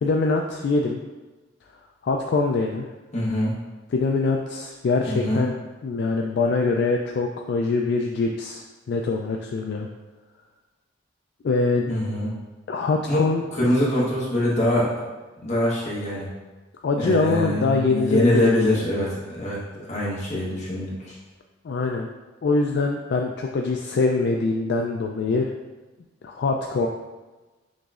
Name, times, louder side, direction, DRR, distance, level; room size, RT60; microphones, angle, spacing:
voice 1, 0.0-1.0 2.0-2.9 3.9-5.5 5.8-9.9 11.4-11.9 12.7-13.4 16.8-18.4 21.6-22.1 22.4-25.5 26.2-26.9, left 3 dB, 60° left, 2 dB, 0.3 m, -23 dB
voice 2, 3.1-3.5 5.1-5.4 11.9-12.3 13.1-13.2 13.5-14.9 15.4-16.3 17.0-19.6 19.9-21.1, left 1 dB, 40° left, -7 dB, 1.3 m, -23 dB
6.2 x 3.1 x 2.4 m, 1.2 s
head